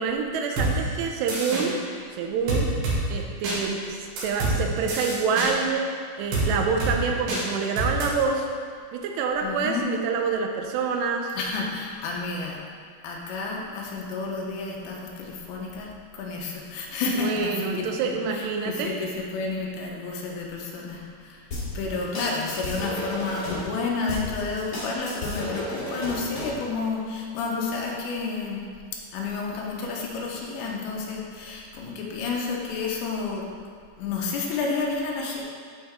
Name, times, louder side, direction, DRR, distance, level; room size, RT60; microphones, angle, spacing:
voice 1, 0.0-1.8 2.1-2.7 3.1-8.5 8.9-11.3 17.2-18.9, right 5 dB, 85° right, 2 dB, 2.7 m, -27 dB
sound 1, 0.6-0.7 1.3-1.6 2.5-3.0 3.4-3.6 4.2-4.6 4.9-5.5 6.3-6.5 6.8-6.9 7.3-7.4 7.8-8.0, right 3 dB, 65° right, 3.3 m, -26 dB
voice 2, 9.4-9.9 11.4-12.6 13.0-21.5 21.7-28.6 29.1-33.5 34.0-35.4, left 4 dB, 85° left, -2 dB, 3.1 m, -30 dB
sound 2, 21.5-23.6 24.1-26.6, left 1 dB, 50° left, 1.3 m, -33 dB
11.5 x 4.7 x 3.4 m, 2.1 s
omnidirectional pair, 5.1 m